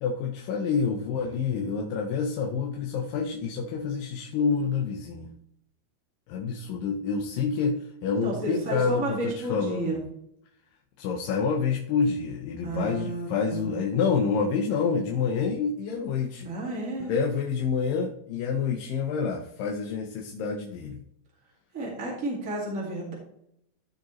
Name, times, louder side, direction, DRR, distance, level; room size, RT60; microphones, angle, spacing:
voice 1, 0.0-5.3 6.3-10.0 11.0-16.5 17.0-21.0, left 5 dB, 80° left, 0 dB, 2.5 m, -28 dB
voice 2, 8.2-10.0 12.6-13.8 16.4-17.1 21.7-23.1, right 2 dB, 25° right, -3 dB, 2.0 m, -31 dB
14.5 x 5.1 x 3.1 m, 0.74 s
omnidirectional pair, 4.0 m